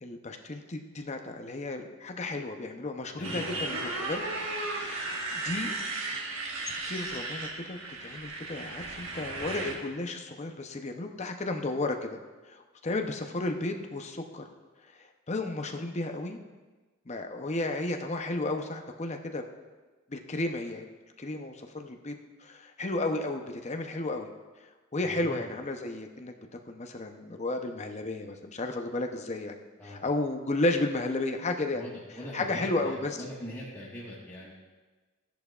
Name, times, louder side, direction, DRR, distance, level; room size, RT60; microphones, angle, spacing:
voice 1, 0.0-4.2 4.6-5.8 6.7-12.2 12.5-14.4 15.3-16.4 17.1-19.4 20.1-20.9 21.2-24.3 24.9-26.3 26.7-29.6 29.8-31.8 32.3-33.2, left 2 dB, 35° left, 4 dB, 0.7 m, -33 dB
voice 2, 3.2-3.7 25.0-25.5 29.8-30.1 31.7-34.5, equal, 10° left, -8 dB, 1.5 m, -42 dB
Motorcycle, 3.2-9.7, right 2 dB, 70° right, 1.4 m, -35 dB
15.0 x 10.5 x 2.4 m, 1.3 s
head